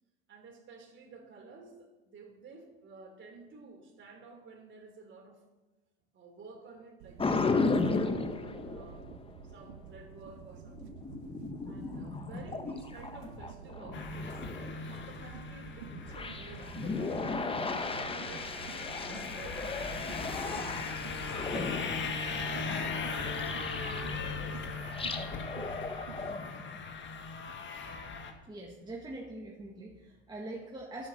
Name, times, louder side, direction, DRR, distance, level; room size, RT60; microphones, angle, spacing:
voice 1, 0.3-5.4 6.1-9.1 9.4-11.0 11.6-17.7 17.9-20.7 21.0-25.2, right 3 dB, 35° right, 2 dB, 3.4 m, -52 dB
sound 1, 7.0-26.3, right 9 dB, 70° right, 0.7 m, -49 dB
sound 2, 7.2-9.7 10.3-15.2 15.8-24.4 24.7-26.9, left 3 dB, 15° left, 1.1 m, -36 dB
sound 3, 13.9-28.3, left 4 dB, 35° left, 1.8 m, -39 dB
voice 2, 28.5-31.1, right 2 dB, 10° right, -2 dB, 1.7 m, -43 dB
11.0 x 8.1 x 6.4 m, 1.1 s
hypercardioid pair, 90°, 34 cm